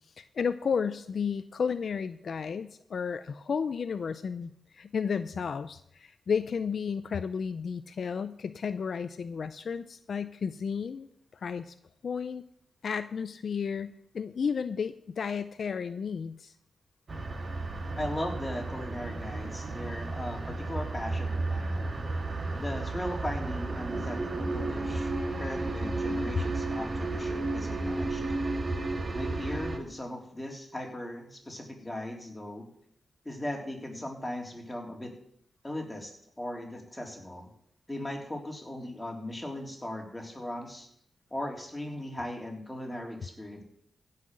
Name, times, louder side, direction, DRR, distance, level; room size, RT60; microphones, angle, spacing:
voice 1, 0.2-11.1 11.3-11.7 12.0-12.4 12.8-16.5, left 6 dB, 65° left, 12 dB, 0.5 m, -32 dB
sound 1, 17.1-29.8, right 2 dB, 45° right, 1.9 m, -33 dB
voice 2, 18.0-21.9 22.5-25.1 25.4-28.2 29.1-32.7 33.3-35.1 35.6-37.5 37.9-40.9 41.3-43.6, left 1 dB, 10° left, 1 dB, 3.5 m, -38 dB
15.5 x 5.8 x 7.8 m, 0.70 s
cardioid pair, 70°, 0 cm